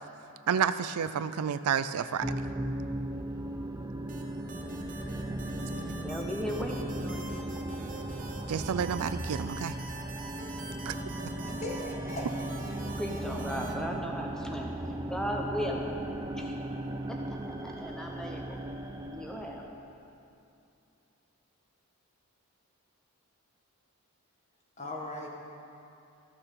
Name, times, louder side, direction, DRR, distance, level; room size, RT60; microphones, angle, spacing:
voice 1, 0.5-2.4 8.5-9.8 10.9-11.0, right 7 dB, 85° right, 13 dB, 0.4 m, -30 dB
sound 1, 2.2-19.7, right 1 dB, 15° right, 0.4 m, -37 dB
sound 2, 4.1-13.7, right 3 dB, 35° right, 0.9 m, -45 dB
voice 2, 6.0-7.4 12.8-14.7 15.1-16.0 16.3-16.6 17.3-17.4 17.6-18.6 19.1-19.6, equal, 5° left, 0 dB, 0.9 m, -36 dB
voice 3, 11.4-12.3 24.8-25.3, left 1 dB, 30° left, -1 dB, 1.3 m, -38 dB
14.0 x 6.7 x 5.7 m, 2.7 s
head